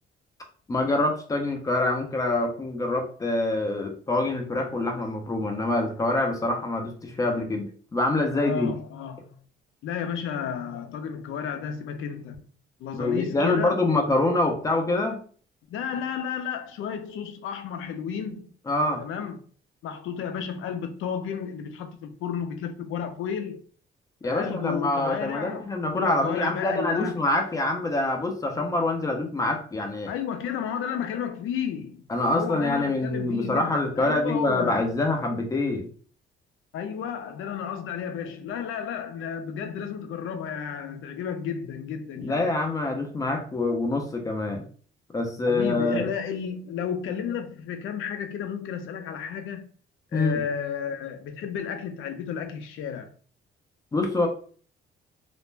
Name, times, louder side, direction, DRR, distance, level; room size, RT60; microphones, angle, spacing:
voice 1, 0.7-8.7 12.9-15.2 18.7-19.0 24.2-30.1 32.1-35.9 42.2-44.7 45.1-46.1 50.1-50.4 53.9-54.3, left 2 dB, 15° left, 0.5 m, -25 dB
voice 2, 8.3-9.3 9.8-12.5 12.8-13.8 15.7-18.5 19.0-19.4 19.8-23.6 24.2-25.7 26.0-27.2 30.1-32.0 32.3-34.8 36.7-42.4 45.5-49.7 50.1-53.1, left 7 dB, 80° left, 0.5 m, -32 dB
2.4 x 2.1 x 3.1 m
cardioid pair, 160°, 21 cm